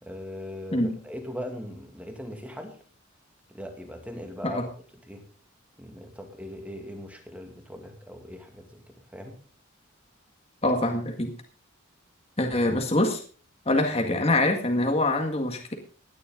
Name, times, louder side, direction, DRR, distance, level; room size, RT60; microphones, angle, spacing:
voice 1, 0.0-2.8 3.5-4.7 5.1-5.3 5.8-9.4, equal, 5° right, 4 dB, 2.2 m, -40 dB
voice 2, 10.6-11.3 12.4-13.2 13.7-15.7, left 1 dB, 30° left, 3 dB, 1.9 m, -24 dB
17.5 x 10.5 x 3.9 m, 0.41 s
head